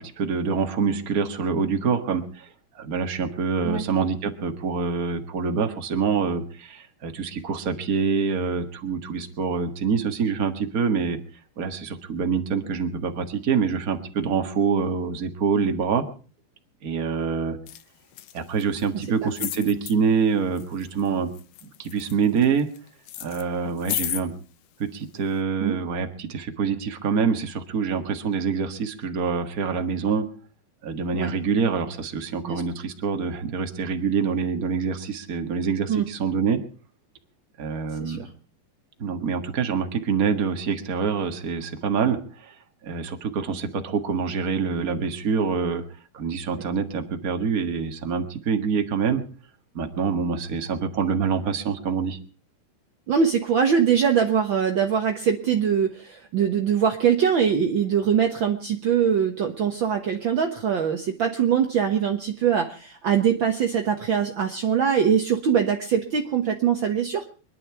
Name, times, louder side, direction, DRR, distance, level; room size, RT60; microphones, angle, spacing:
voice 1, 0.0-2.5 2.7-11.2 11.6-16.1 16.8-17.6 18.3-21.3 21.8-22.7 23.2-24.3 24.8-30.2 30.8-36.6 37.6-38.3 39.0-42.5 42.8-45.8 46.1-49.2 49.7-52.2, right 6 dB, 40° right, 6 dB, 1.3 m, -25 dB
sound 1, 17.7-17.8 18.1-18.9 19.3-19.9 20.6-21.1 21.3-22.8 23.1-24.2 25.0-25.1, left 13 dB, 90° left, 1.4 m, -32 dB
voice 2, 53.1-67.3, right 7 dB, 65° right, 3 dB, 1.2 m, -22 dB
25.0 x 11.0 x 4.7 m, 0.38 s
omnidirectional pair, 4.1 m